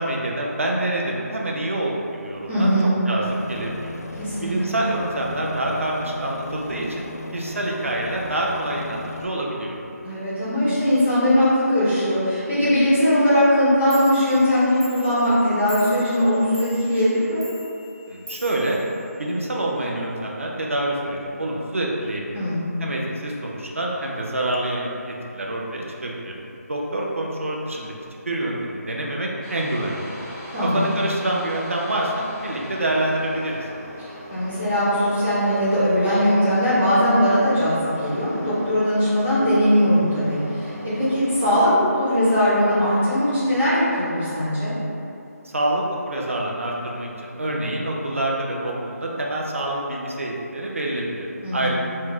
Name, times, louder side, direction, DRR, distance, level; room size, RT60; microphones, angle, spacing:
voice 1, 0.0-2.7 3.1-4.0 4.4-7.0 7.3-9.8 18.1-18.8 19.2-22.4 22.8-26.3 26.7-28.0 28.2-30.2 30.6-33.6 45.4-51.3 51.5-51.7, right 1 dB, 55° right, -2 dB, 0.6 m, -26 dB
voice 2, 2.5-2.9 4.2-4.8 10.0-17.4 22.3-22.7 30.5-30.9 34.0-44.7 51.4-51.7, equal, 5° left, -15 dB, 0.4 m, -20 dB
Aircraft, 3.2-9.2, left 2 dB, 70° left, 0.5 m, -36 dB
Clock, 13.6-13.7 13.9-19.6, left 1 dB, 80° right, 1.0 m, -43 dB
sound 1, 29.4-41.7, equal, 20° right, 0.9 m, -40 dB
4.5 x 2.1 x 4.4 m, 2.8 s
figure-of-eight pair, 180°, 9 cm